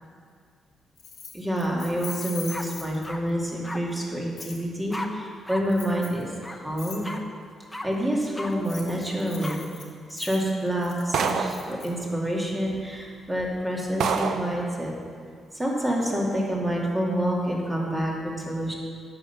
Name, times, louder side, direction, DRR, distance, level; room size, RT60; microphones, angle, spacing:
Keys jangling, 1.0-3.3 4.4-4.6 5.7-6.2 6.8-7.0 8.5-11.9, left 6 dB, 65° left, 1.6 m, -41 dB
voice 1, 1.3-7.1 7.8-9.6 10.1-14.9 15.5-18.7, equal, 15° right, -3 dB, 2.3 m, -28 dB
sound 1, 2.0-2.2 2.5-3.2 3.6-3.8 4.9-5.1 5.5-5.6 5.9-6.0 6.4-6.6 7.0-7.2 7.7-7.9 8.3-8.5 9.4-9.6, left 1 dB, 10° left, 0.8 m, -36 dB
sound 2, 11.1-11.7 12.7-12.8 13.4-13.5 14.0-14.5, right 6 dB, 75° right, 0.6 m, -26 dB
8.9 x 5.6 x 7.0 m, 2.1 s
cardioid pair, 85°, 0 cm